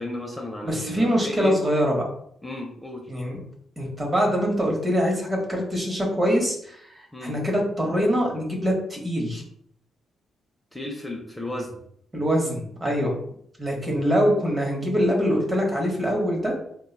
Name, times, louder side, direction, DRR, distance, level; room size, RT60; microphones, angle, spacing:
voice 1, 0.0-1.6 2.4-3.1 7.1-7.4 10.7-11.7, left 1 dB, 10° left, 1 dB, 0.5 m, -34 dB
voice 2, 0.6-2.0 3.1-3.4 3.8-9.4 12.1-13.1 13.6-16.5, equal, 30° right, 0 dB, 0.9 m, -24 dB
3.0 x 2.2 x 2.2 m, 0.69 s
supercardioid pair, 60°, 0 cm